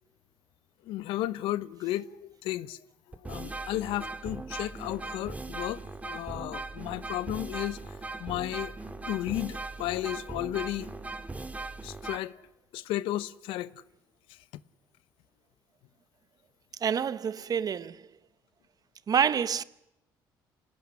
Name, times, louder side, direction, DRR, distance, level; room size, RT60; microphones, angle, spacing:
voice 1, 0.8-2.8 3.2-5.8 6.0-7.8 8.2-8.7 9.1-10.9 11.8-12.4 12.7-13.7, left 15 dB, 90° left, 0.8 m, -33 dB
sound 1, 2.5-2.6 3.1-12.2, right 3 dB, 15° right, 2.0 m, -39 dB
voice 2, 16.8-18.0 19.1-19.6, right 7 dB, 45° right, 1.0 m, -27 dB
25.5 x 19.0 x 9.7 m
cardioid pair, 90°, 9 cm